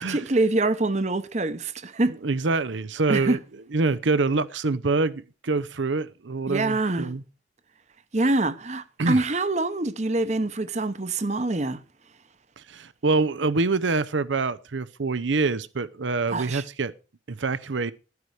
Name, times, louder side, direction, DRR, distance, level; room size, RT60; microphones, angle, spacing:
voice 1, 0.0-2.1 3.1-3.4 6.5-7.1 8.1-11.8 16.3-16.6, right 2 dB, 40° right, 0.9 m, -25 dB
voice 2, 2.2-3.4 3.7-7.2 9.0-9.2 12.6-16.9 17.3-17.9, right 3 dB, 85° right, 0.7 m, -25 dB
13.0 x 9.6 x 4.8 m
head